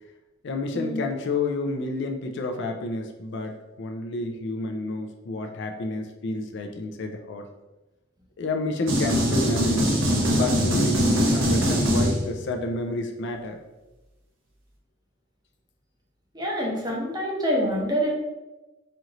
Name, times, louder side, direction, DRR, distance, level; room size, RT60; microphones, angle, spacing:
voice 1, 0.4-7.5 8.4-10.0 10.2-13.6, left 2 dB, 60° left, 3 dB, 0.4 m, -30 dB
sound 1, 8.9-12.6, equal, 70° right, 0.8 m, -22 dB
voice 2, 16.3-18.1, equal, 20° right, -2 dB, 0.8 m, -26 dB
4.3 x 2.5 x 3.0 m, 1.1 s
head